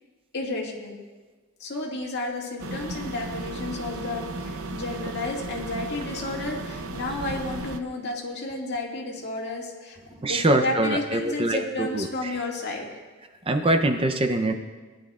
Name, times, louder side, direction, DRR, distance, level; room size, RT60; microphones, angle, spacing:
voice 1, 0.3-1.0 1.6-10.0 10.3-12.9, left 2 dB, 50° left, -2 dB, 2.0 m, -32 dB
sound 1, 2.6-7.8, right 2 dB, 85° right, 0.7 m, -35 dB
voice 2, 10.2-12.4 13.5-14.5, right 1 dB, 25° right, 6 dB, 0.6 m, -24 dB
20.5 x 10.5 x 2.4 m, 1.3 s
head